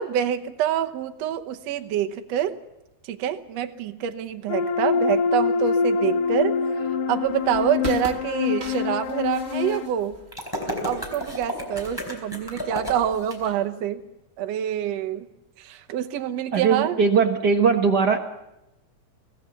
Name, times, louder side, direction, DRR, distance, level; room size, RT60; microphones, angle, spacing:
voice 1, 0.0-2.6 3.1-6.6 7.1-10.2 10.8-14.1 14.4-15.3 15.6-17.0, right 10 dB, 70° right, 7 dB, 2.0 m, -26 dB
sound 1, 4.5-9.9, left 6 dB, 80° left, 2.4 m, -25 dB
sound 2, 7.2-13.7, right 3 dB, 30° right, 1.5 m, -42 dB
sound 3, 10.3-13.4, left 1 dB, 5° left, 4.0 m, -32 dB
voice 2, 16.5-18.2, right 5 dB, 55° right, 4 dB, 1.2 m, -20 dB
24.5 x 17.0 x 6.9 m, 0.91 s
omnidirectional pair, 3.4 m